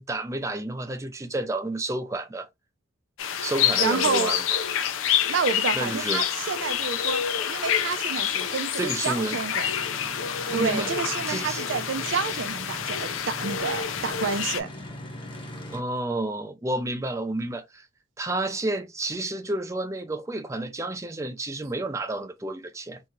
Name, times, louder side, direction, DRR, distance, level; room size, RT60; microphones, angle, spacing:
voice 1, 0.0-2.5 3.4-4.6 5.8-6.2 8.8-9.4 10.5-10.9 11.3-11.6 15.7-17.9 18.2-23.0, right 2 dB, 15° right, 0.4 m, -30 dB
sound 1, 3.2-14.6, left 8 dB, 90° left, 0.5 m, -28 dB
voice 2, 3.8-4.4 5.3-7.2 7.5-9.7 10.5-14.7, right 5 dB, 75° right, 0.5 m, -29 dB
sound 2, 9.1-15.8, equal, 25° left, 0.8 m, -41 dB
2.7 x 2.4 x 2.9 m
head